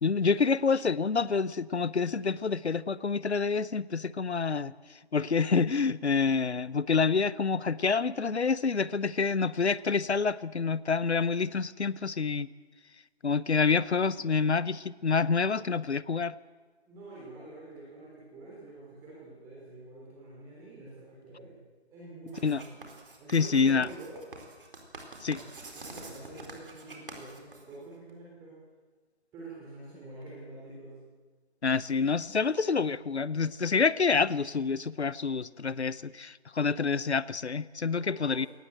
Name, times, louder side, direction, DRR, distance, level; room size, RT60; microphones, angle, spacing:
voice 1, 0.0-4.7 5.1-12.5 13.2-16.3 22.4-22.6 23.3-23.9 25.2-25.4 31.6-38.5, left 5 dB, 75° left, 19 dB, 0.9 m, -27 dB
voice 2, 16.8-21.6 21.9-22.8 23.2-24.2 25.2-28.6 29.3-31.0 37.9-38.5, right 2 dB, 10° right, -6 dB, 3.5 m, -47 dB
Writing, 22.3-28.1, right 3 dB, 55° right, 4.4 m, -47 dB
22.5 x 18.5 x 7.9 m, 1.4 s
figure-of-eight pair, 155°, 33 cm